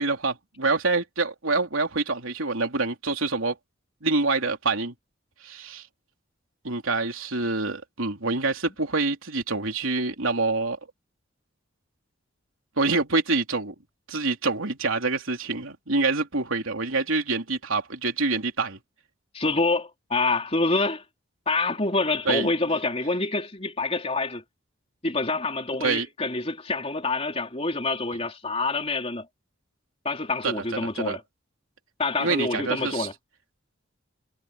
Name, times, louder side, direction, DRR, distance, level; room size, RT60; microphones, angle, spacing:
voice 1, 0.0-3.6 4.0-4.9 5.4-5.8 6.6-10.8 12.8-13.7 14.1-18.8 22.3-22.5 25.8-26.1 30.4-31.2 32.2-33.1, right 3 dB, 85° right, 3.4 m, -26 dB
voice 2, 19.3-21.0 21.5-24.4 25.0-29.3 30.0-31.2 32.0-33.1, left 3 dB, 30° left, 3.8 m, -26 dB
head